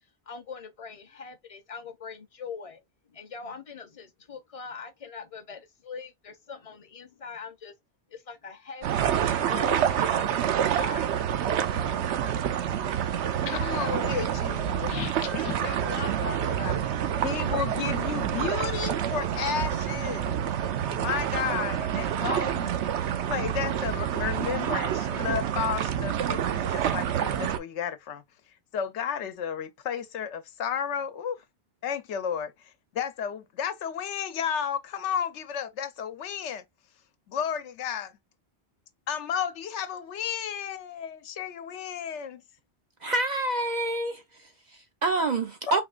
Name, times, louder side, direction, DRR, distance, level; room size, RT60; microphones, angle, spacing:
voice 1, 0.3-2.8 3.1-7.8 8.1-11.2, left 5 dB, 40° left, 0.6 m, -42 dB
sound 1, 8.8-27.6, right 9 dB, 80° right, 0.9 m, -28 dB
voice 2, 13.4-20.3 20.9-22.8 23.3-28.2 28.7-31.4 31.8-36.6 37.3-38.1 39.1-42.4 45.7-45.8, left 8 dB, 85° left, 1.0 m, -33 dB
voice 3, 43.0-45.8, right 2 dB, 55° right, 0.5 m, -28 dB
4.3 x 3.0 x 2.4 m
omnidirectional pair, 1.2 m